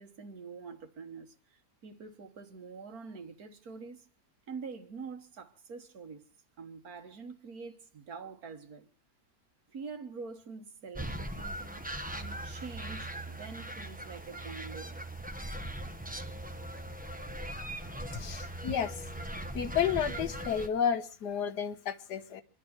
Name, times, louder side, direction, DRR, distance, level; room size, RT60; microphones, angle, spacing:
voice 1, 0.0-4.1 4.5-6.2 6.6-8.9 9.7-14.9, right 5 dB, 60° right, 2.0 m, -45 dB
sound 1, 11.0-20.7, right 1 dB, 5° right, 0.8 m, -40 dB
voice 2, 18.1-19.1 19.5-22.4, left 8 dB, 80° left, 1.6 m, -31 dB
27.5 x 11.5 x 4.3 m
omnidirectional pair, 1.8 m